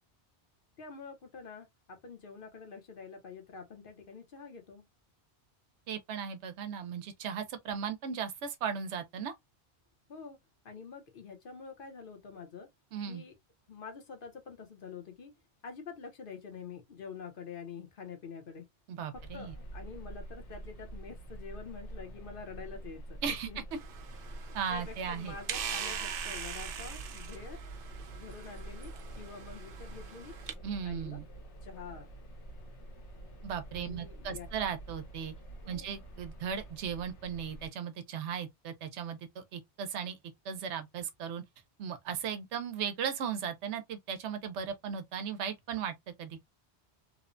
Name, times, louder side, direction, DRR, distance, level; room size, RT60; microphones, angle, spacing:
voice 1, 0.8-4.8 10.1-10.4 10.6-12.7 13.1-13.3 13.7-15.3 15.6-18.7 19.3-23.6 24.7-27.6 28.1-30.4 30.8-31.2 31.6-32.1 33.8-34.5 35.6-35.9, left 5 dB, 55° left, 0.9 m, -46 dB
voice 2, 5.9-9.3 12.9-13.2 18.9-19.5 23.2-23.5 24.5-25.3 30.6-31.3 33.4-35.3 35.7-40.2 40.4-41.4 41.8-46.4, right 7 dB, 85° right, 0.9 m, -37 dB
sound 1, 19.1-37.7, right 1 dB, 80° left, 1.4 m, -47 dB
sound 2, 23.7-30.5, right 8 dB, 60° right, 0.7 m, -42 dB
3.0 x 2.1 x 2.4 m
omnidirectional pair, 1.1 m